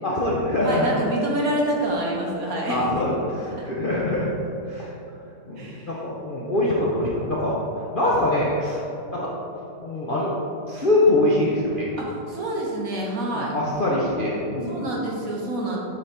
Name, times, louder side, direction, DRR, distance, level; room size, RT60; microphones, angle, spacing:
voice 1, 0.0-0.9 2.7-4.3 4.7-4.9 5.5-7.5 7.9-8.8 9.1-9.3 9.8-10.3 10.7-11.9 13.3-14.8, left 1 dB, 45° left, -5 dB, 0.6 m, -23 dB
voice 2, 0.6-3.0 3.6-3.7 5.6-5.9 12.0-13.6 14.7-15.8, right 1 dB, 55° right, -3 dB, 1.5 m, -27 dB
8.0 x 4.2 x 4.3 m, 2.7 s
omnidirectional pair, 1.9 m